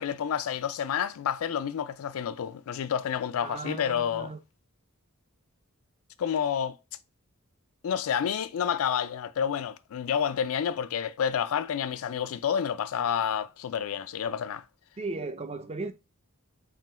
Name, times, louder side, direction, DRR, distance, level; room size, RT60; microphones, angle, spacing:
voice 1, 0.0-4.3 6.2-6.8 7.8-14.6, left 8 dB, 75° left, 0.4 m, -29 dB
voice 2, 3.4-4.4 15.0-15.9, right 3 dB, 30° right, 0.4 m, -36 dB
3.8 x 2.1 x 4.2 m
head